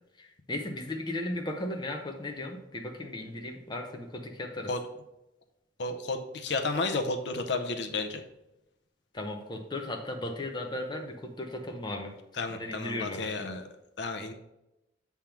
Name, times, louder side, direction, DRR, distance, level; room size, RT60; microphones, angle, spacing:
voice 1, 0.2-4.7 9.1-12.1 12.5-13.6, left 1 dB, 25° left, 3 dB, 0.7 m, -36 dB
voice 2, 5.8-8.2 12.4-13.6 14.0-14.3, left 3 dB, 65° left, 6 dB, 0.7 m, -32 dB
7.3 x 3.5 x 5.8 m, 0.93 s
head